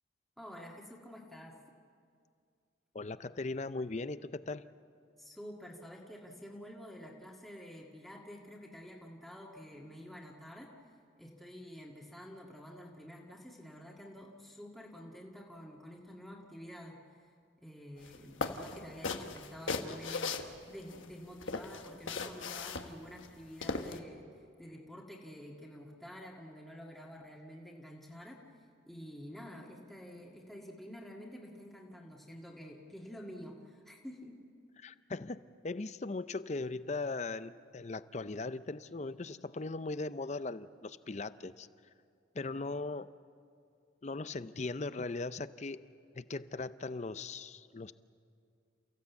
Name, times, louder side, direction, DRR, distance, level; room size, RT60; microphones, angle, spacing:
voice 1, 0.4-1.6 5.2-10.7 11.2-17.3 17.6-28.4 28.9-34.4, equal, ahead, -3 dB, 1.8 m, -49 dB
voice 2, 2.9-4.6 34.8-41.7 42.3-43.1 44.0-45.8 46.1-47.9, left 3 dB, 35° left, 14 dB, 0.5 m, -39 dB
sound 1, 18.0-18.2 18.4-21.0 21.4-24.0, left 4 dB, 85° left, 1.3 m, -37 dB
29.0 x 16.0 x 8.3 m, 2.3 s
head